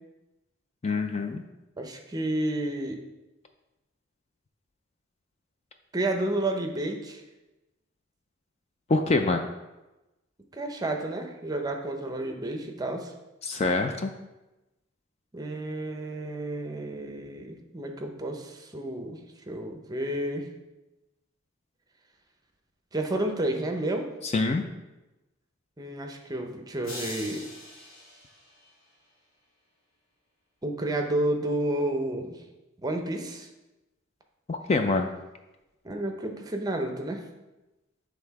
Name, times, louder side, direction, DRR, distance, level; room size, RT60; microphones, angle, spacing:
voice 1, 0.8-1.4 8.9-9.5 13.4-14.1 24.2-24.7 34.5-35.1, left 3 dB, 30° left, 5 dB, 0.4 m, -25 dB
voice 2, 1.8-3.0 5.9-7.2 10.5-13.1 15.3-19.2 19.5-20.5 22.9-24.1 25.8-27.4 30.6-32.4 32.8-33.5 35.8-37.2, right 1 dB, 20° right, 3 dB, 0.6 m, -31 dB
sound 1, 26.8-29.1, left 1 dB, 80° left, 1.8 m, -42 dB
7.7 x 3.5 x 4.6 m, 1.0 s
head